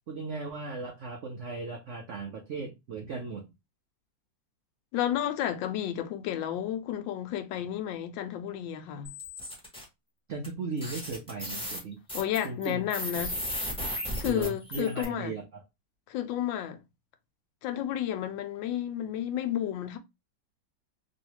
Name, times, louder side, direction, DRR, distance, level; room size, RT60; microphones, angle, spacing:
voice 1, 0.1-3.5 10.3-12.0 12.4-12.8 14.2-15.6, right 4 dB, 75° right, 0.7 m, -37 dB
voice 2, 4.9-9.1 12.1-13.4 14.2-15.3 16.1-16.8 17.6-20.0, left 11 dB, 80° left, 1.3 m, -31 dB
sound 1, 9.0-9.8 10.4-10.5 10.8-15.0, equal, 5° left, 1.0 m, -35 dB
3.1 x 2.7 x 2.9 m
omnidirectional pair, 2.0 m